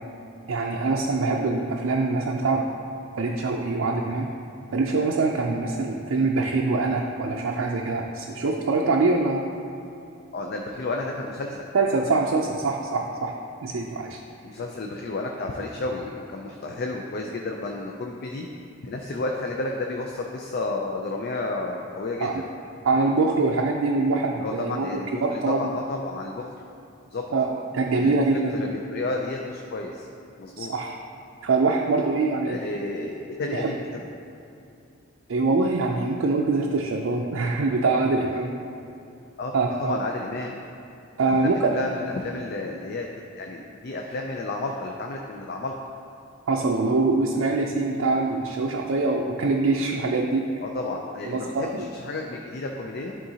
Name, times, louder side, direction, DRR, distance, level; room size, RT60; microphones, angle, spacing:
voice 1, 0.5-2.7 3.2-4.3 4.7-9.4 11.7-13.3 13.6-14.2 22.2-22.4 22.8-25.6 27.3-28.5 30.6-30.9 31.4-32.6 33.5-33.7 35.3-38.5 39.5-40.0 41.2-41.7 46.5-50.5 51.3-51.9, right 3 dB, 80° right, 0 dB, 0.4 m, -24 dB
voice 2, 10.3-11.7 14.4-18.5 18.8-22.5 24.3-26.5 27.1-27.2 27.9-30.1 30.4-30.7 32.5-34.0 39.4-39.5 39.8-40.6 41.3-43.1 43.4-45.7 50.6-53.2, left 2 dB, 50° left, 1 dB, 0.4 m, -32 dB
10.5 x 3.8 x 2.8 m, 2.7 s
head